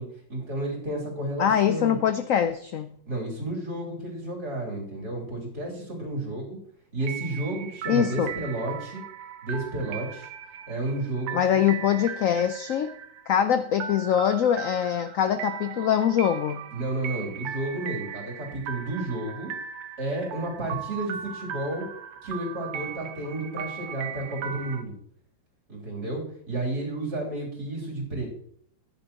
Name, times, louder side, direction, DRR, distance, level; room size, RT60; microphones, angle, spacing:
voice 1, 0.0-2.0 3.1-6.6 6.9-9.0 9.4-10.3 10.7-11.7 16.7-19.5 20.0-21.9 22.2-24.9 25.7-28.3, right 2 dB, 55° right, -3 dB, 3.6 m, -32 dB
voice 2, 1.4-3.0 7.9-8.3 11.3-12.9 13.3-16.6, left 9 dB, 80° left, 10 dB, 0.7 m, -23 dB
sound 1, 7.0-24.8, right 8 dB, 85° right, 1.5 m, -38 dB
14.0 x 10.0 x 2.9 m, 0.64 s
omnidirectional pair, 2.0 m